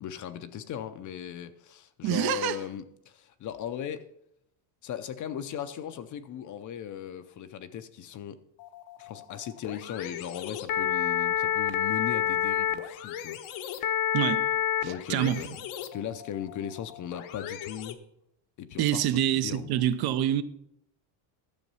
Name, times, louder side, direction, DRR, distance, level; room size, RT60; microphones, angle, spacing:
voice 1, 0.0-4.0 4.8-8.4 9.0-13.8 14.8-15.6 15.9-18.0 18.6-19.9, left 9 dB, 40° left, 0.6 m, -38 dB
voice 2, 2.0-2.6 14.1-14.5 14.8-15.4 18.8-20.4, right 11 dB, 50° right, 0.6 m, -26 dB
sound 1, 8.6-17.9, left 10 dB, 75° left, 1.1 m, -30 dB
12.0 x 7.0 x 5.5 m
cardioid pair, 160°, 49 cm